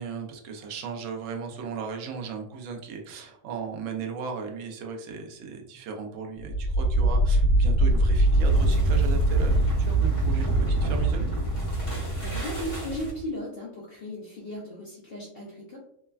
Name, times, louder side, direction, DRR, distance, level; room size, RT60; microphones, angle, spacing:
voice 1, 0.0-11.3, right 5 dB, 70° right, 2 dB, 0.8 m, -36 dB
sound 1, 6.4-13.3, right 1 dB, 40° left, 1.2 m, -23 dB
voice 2, 12.2-15.8, equal, 80° left, -4 dB, 0.5 m, -36 dB
3.2 x 2.1 x 2.2 m, 0.73 s
omnidirectional pair, 1.6 m